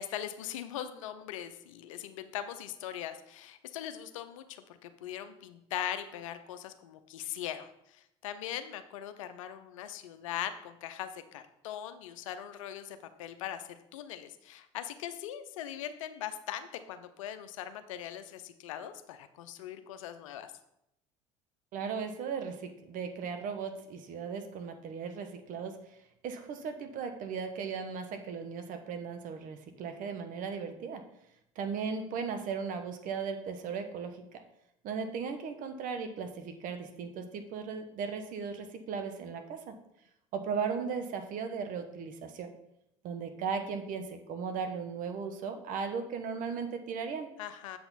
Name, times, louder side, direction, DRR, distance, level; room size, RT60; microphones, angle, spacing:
voice 1, 0.0-20.5 47.4-47.8, left 10 dB, 80° left, 10 dB, 0.6 m, -40 dB
voice 2, 21.7-25.8 26.2-31.0 31.6-34.2 34.8-39.7 40.3-42.5 43.0-47.3, right 6 dB, 55° right, 7 dB, 1.1 m, -37 dB
7.7 x 6.0 x 4.0 m, 0.80 s
hypercardioid pair, 70°, 17 cm